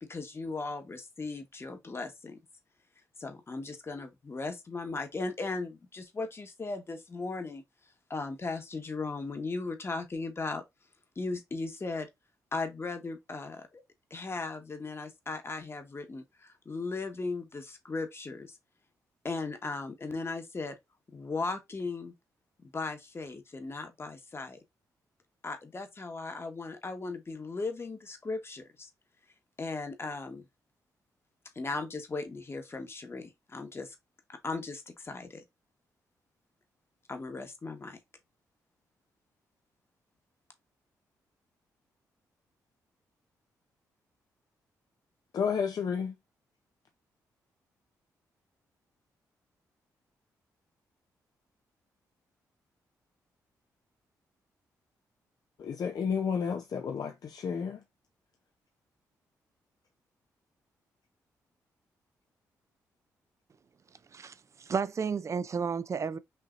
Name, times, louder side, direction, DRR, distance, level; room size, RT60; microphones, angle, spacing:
voice 1, 0.0-2.4 3.2-7.6 8.1-10.6 11.2-12.1 12.5-13.8 14.1-18.5 19.2-20.7 21.1-22.1 22.6-24.6 25.4-28.9 29.6-30.5 31.5-33.9 34.3-35.4 37.1-38.0, left 3 dB, 35° left, 1.3 m, -37 dB
voice 2, 45.3-46.1 55.6-57.8, left 6 dB, 60° left, 0.7 m, -31 dB
voice 3, 64.1-66.2, right 6 dB, 45° right, 0.4 m, -32 dB
5.6 x 2.7 x 2.5 m
supercardioid pair, 55°, 7 cm